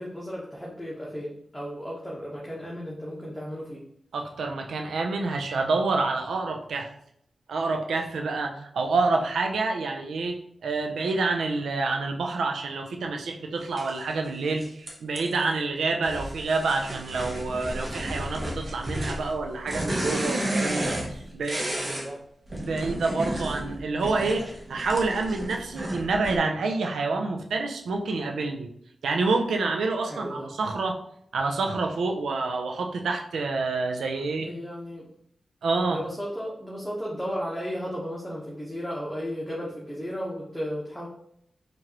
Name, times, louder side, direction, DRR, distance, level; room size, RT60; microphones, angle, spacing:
voice 1, 0.0-3.8 20.7-21.3 21.8-22.2 30.1-30.5 34.4-35.1 35.9-41.1, equal, 5° left, -5 dB, 1.1 m, -35 dB
voice 2, 4.1-6.9 7.5-21.7 22.5-28.7 29.0-31.0 31.3-34.5 35.6-36.0, right 3 dB, 85° right, 3 dB, 0.5 m, -28 dB
sound 1, 13.8-13.9 14.6-15.5 16.0-22.1 22.4-26.4, right 1 dB, 40° right, 1.1 m, -32 dB
4.4 x 2.6 x 3.0 m, 0.71 s
cardioid pair, 50°, 0 cm